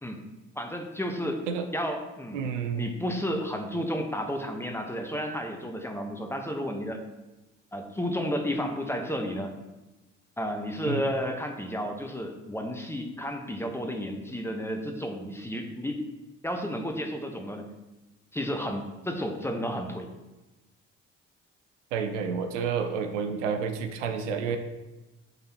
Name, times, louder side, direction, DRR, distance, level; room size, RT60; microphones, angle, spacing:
voice 1, 0.5-1.4 1.7-2.4 2.8-7.0 7.7-9.5 10.4-16.0 16.4-17.7 18.3-20.1, equal, 5° left, 4 dB, 1.0 m, -32 dB
voice 2, 2.3-2.9 10.9-11.0 21.9-24.6, right 6 dB, 85° right, 7 dB, 0.6 m, -30 dB
9.6 x 3.9 x 2.9 m, 1.1 s
hypercardioid pair, 50°, 36 cm